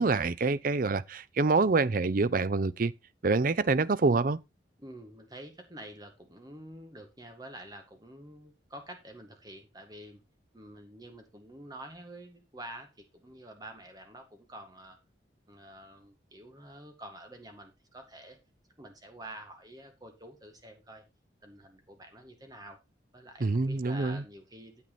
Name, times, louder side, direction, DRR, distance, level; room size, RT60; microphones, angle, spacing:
voice 1, 0.0-2.9 3.2-4.4 23.4-24.2, right 3 dB, 50° right, 0.6 m, -26 dB
voice 2, 4.8-10.2 10.5-15.0 15.5-18.4 18.8-21.0 21.4-22.8 23.1-24.8, right 1 dB, 20° right, 1.9 m, -48 dB
9.2 x 7.8 x 4.1 m
head